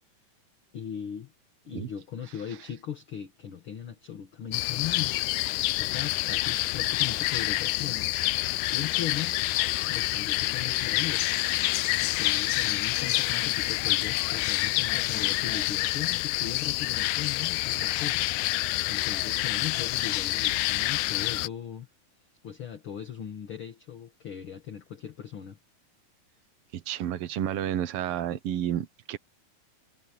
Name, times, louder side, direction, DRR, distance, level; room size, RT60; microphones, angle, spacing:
voice 1, 0.7-1.3 1.7-5.2 5.8-8.1 8.7-9.4 9.9-11.3 12.0-21.9 22.4-25.6, left 9 dB, 45° left, 2.1 m, -38 dB
sound 1, 4.5-21.5, left 19 dB, 80° left, 1.8 m, -27 dB
voice 2, 26.7-29.2, right 10 dB, 80° right, 1.3 m, -31 dB
omnidirectional pair, 4.0 m